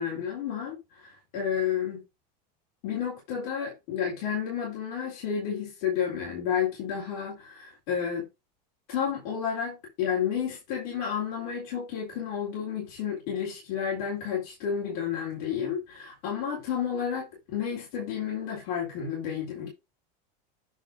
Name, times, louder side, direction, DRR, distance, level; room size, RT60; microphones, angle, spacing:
voice 1, 0.0-2.0 2.8-8.3 8.9-19.7, left 8 dB, 60° left, 4.2 m, -31 dB
9.8 x 3.6 x 4.8 m
supercardioid pair, 170°, 21 cm